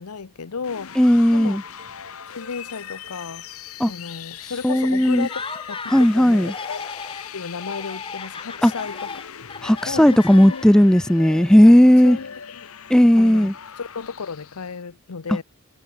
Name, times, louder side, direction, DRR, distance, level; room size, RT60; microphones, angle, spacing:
voice 1, 0.0-1.0 1.3-1.6 2.3-3.5 3.8-6.8 7.3-9.3 9.9-10.6 11.6-11.8 12.0-12.7 13.2-15.4, left 5 dB, 85° left, 0.8 m, -34 dB
sound 1, 0.6-14.8, left 8 dB, 70° left, 1.1 m, -39 dB
voice 2, 1.0-1.6 3.8-3.9 4.6-5.3 5.9-6.5 8.6-8.7 9.6-12.2 12.9-13.5, equal, 5° left, 0.3 m, -15 dB
Dishes pots and pans, 1.4-8.0, right 2 dB, 60° right, 4.5 m, -56 dB
Laughter, 5.2-6.1 6.4-7.3 7.6-10.9, left 4 dB, 25° left, 2.1 m, -36 dB
head